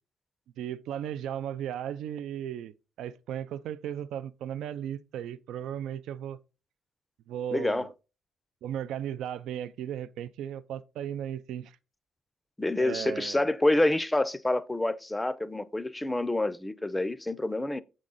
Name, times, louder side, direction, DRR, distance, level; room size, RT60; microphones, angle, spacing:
voice 1, 0.6-6.4 7.3-7.9 8.6-11.8 12.8-13.4, right 10 dB, 80° right, 0.3 m, -36 dB
voice 2, 7.5-7.9 12.6-17.8, left 1 dB, 10° left, 0.5 m, -27 dB
7.3 x 3.7 x 3.9 m
cardioid pair, 90°, 0 cm